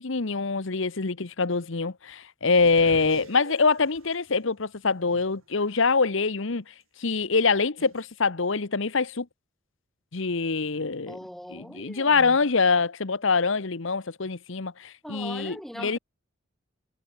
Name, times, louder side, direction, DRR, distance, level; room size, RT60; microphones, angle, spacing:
voice 1, 0.0-6.6 7.0-9.3 10.1-11.2 11.5-16.0, left 4 dB, 65° left, 1.1 m, -25 dB
sound 1, 2.5-5.6 6.1-6.2 7.8-8.1, right 3 dB, 85° right, 1.8 m, -46 dB
voice 2, 11.1-12.4 15.0-16.0, equal, ahead, 1.3 m, -41 dB
head